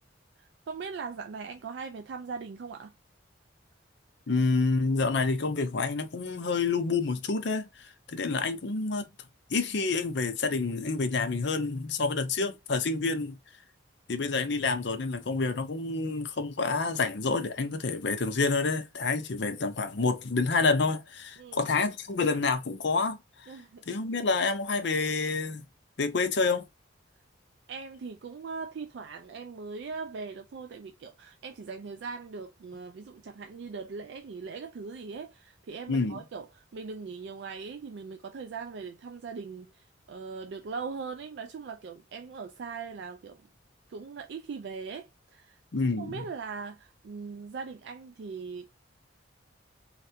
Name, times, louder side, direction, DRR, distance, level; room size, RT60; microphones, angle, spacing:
voice 1, 0.4-2.9 21.4-21.7 23.5-23.8 27.7-43.5 43.9-48.7, right 5 dB, 60° right, 0.3 m, -40 dB
voice 2, 4.3-7.7 8.1-9.0 9.5-13.4 14.1-23.2 23.9-25.6 26.0-26.7 35.9-36.2 45.7-46.1, left 4 dB, 60° left, 0.6 m, -28 dB
3.2 x 2.5 x 2.7 m
head